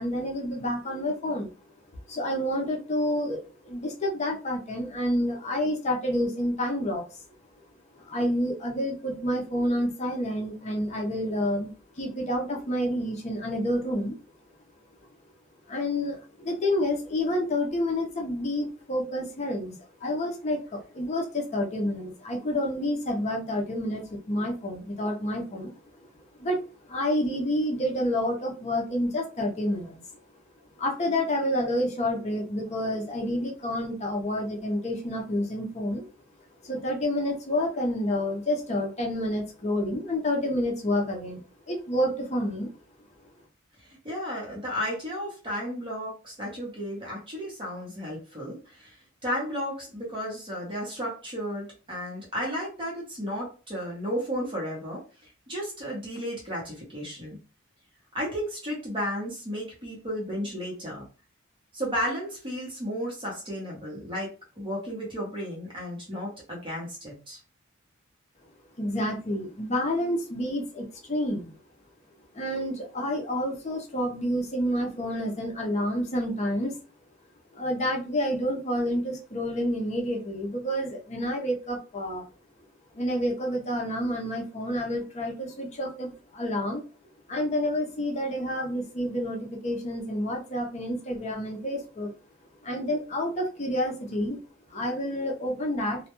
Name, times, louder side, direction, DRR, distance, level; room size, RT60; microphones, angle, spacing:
voice 1, 0.0-1.5 2.1-7.2 8.0-14.2 15.7-19.7 20.0-25.7 26.4-26.6 26.9-30.0 30.8-36.0 36.6-41.4 41.7-42.7 68.8-71.5 72.3-76.7 77.5-82.3 82.9-86.8 87.3-92.1 92.6-94.4 94.7-96.0, left 1 dB, 35° left, 1 dB, 0.5 m, -29 dB
voice 2, 43.8-49.0 49.2-55.0 55.5-57.4 58.1-61.1 61.7-67.4, equal, 25° right, -4 dB, 0.7 m, -33 dB
2.2 x 2.1 x 2.9 m, 0.34 s
head